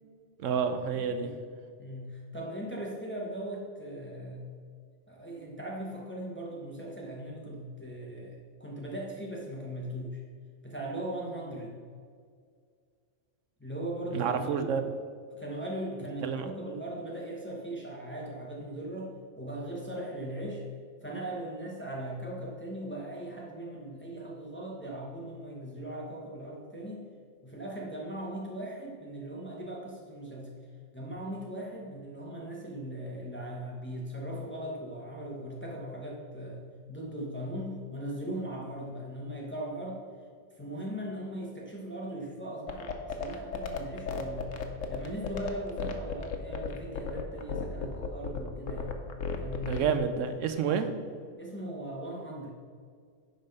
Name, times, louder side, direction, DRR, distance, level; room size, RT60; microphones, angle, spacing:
voice 1, 0.4-1.3 14.1-14.9 16.2-16.5 49.6-50.9, right 7 dB, 80° right, 9 dB, 1.0 m, -29 dB
voice 2, 0.9-1.4 1.8-4.5 5.1-10.2 10.6-11.8 13.6-14.7 15.3-20.6 21.0-27.1 27.4-30.5 30.9-40.1 40.6-44.5 44.9-49.0 49.4-49.9 50.3-50.4 50.7-50.9 51.4-52.5, right 1 dB, 10° left, -3 dB, 1.1 m, -39 dB
sound 1, 42.7-50.0, left 6 dB, 85° left, 1.2 m, -34 dB
10.5 x 4.0 x 5.3 m, 2.1 s
omnidirectional pair, 1.3 m